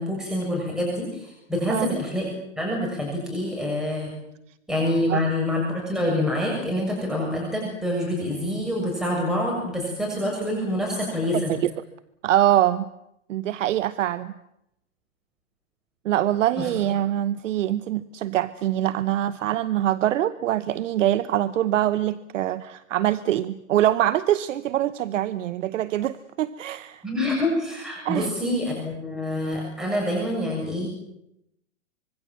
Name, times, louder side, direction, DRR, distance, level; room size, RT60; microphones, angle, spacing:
voice 1, 0.0-2.3 2.6-4.1 4.7-11.5 16.6-16.7 27.0-30.9, left 1 dB, ahead, -2 dB, 7.0 m, -26 dB
voice 2, 11.3-11.7 12.2-12.8 13.3-14.3 16.0-27.0 28.0-28.3, right 12 dB, 70° right, 15 dB, 1.0 m, -24 dB
25.5 x 22.5 x 7.6 m, 0.81 s
hypercardioid pair, 120°, 40 cm